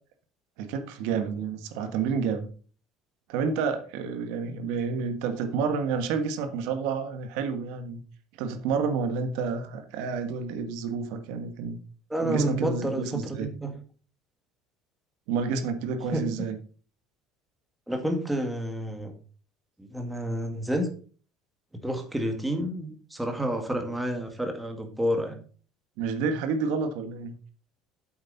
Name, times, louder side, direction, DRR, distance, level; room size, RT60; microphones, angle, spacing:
voice 1, 0.6-2.5 3.3-8.0 8.4-11.8 12.2-13.5 15.3-16.6 26.0-27.3, right 5 dB, 75° right, 8 dB, 1.4 m, -29 dB
voice 2, 12.1-13.7 16.1-16.3 17.9-19.1 19.8-20.9 21.7-25.4, right 1 dB, 5° right, 4 dB, 1.8 m, -29 dB
8.7 x 7.7 x 4.0 m, 0.40 s
cardioid pair, 140°, 0 cm